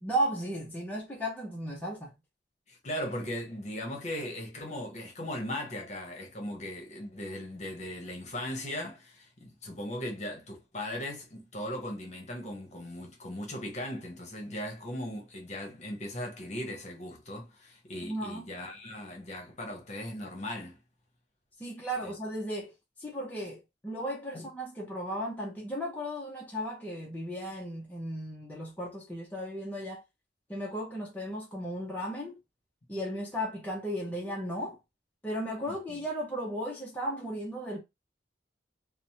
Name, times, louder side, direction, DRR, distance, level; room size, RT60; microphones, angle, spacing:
voice 1, 0.0-2.2 18.0-18.5 21.6-22.7 23.0-30.0 30.5-32.4 32.9-34.8 35.2-37.8, equal, 10° left, 0.5 m, -35 dB
voice 2, 2.7-20.8 22.0-22.1 24.3-24.5 35.7-36.1, left 1 dB, 40° left, 0.8 m, -38 dB
3.0 x 2.0 x 2.7 m
head